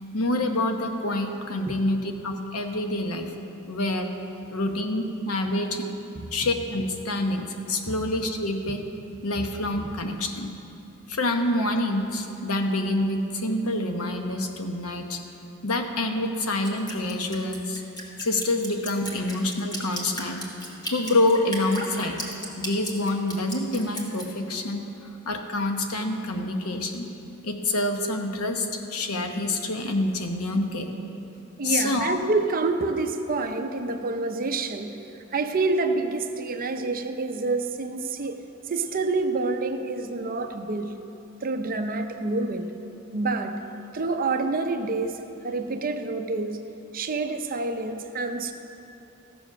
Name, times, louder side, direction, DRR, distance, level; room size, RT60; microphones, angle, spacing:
voice 1, 0.1-3.3 3.7-4.1 4.5-5.8 6.3-8.8 9.2-10.6 11.1-15.2 15.6-17.8 18.2-20.5 20.9-22.2 22.6-27.1 27.4-30.9 31.6-32.2, left 2 dB, 75° left, 4 dB, 1.0 m, -27 dB
Drip, 16.6-24.3, equal, 20° left, 1.5 m, -35 dB
voice 2, 31.6-35.0 35.3-38.4 38.7-40.9 41.4-42.7 43.1-43.6 43.9-45.2 45.4-46.6 46.9-48.5, right 3 dB, 40° right, 6 dB, 0.6 m, -27 dB
14.5 x 7.0 x 5.9 m, 2.8 s
head